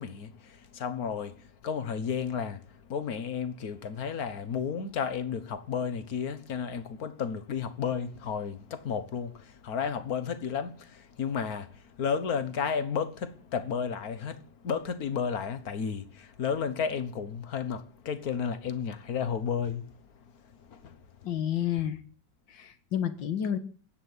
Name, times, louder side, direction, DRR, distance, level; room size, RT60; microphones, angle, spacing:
voice 1, 0.0-2.6 2.9-19.8 20.7-21.0, left 6 dB, 55° left, 1.7 m, -32 dB
voice 2, 21.3-22.0 22.5-23.6, left 10 dB, 85° left, 2.1 m, -30 dB
15.0 x 9.0 x 9.6 m
omnidirectional pair, 2.0 m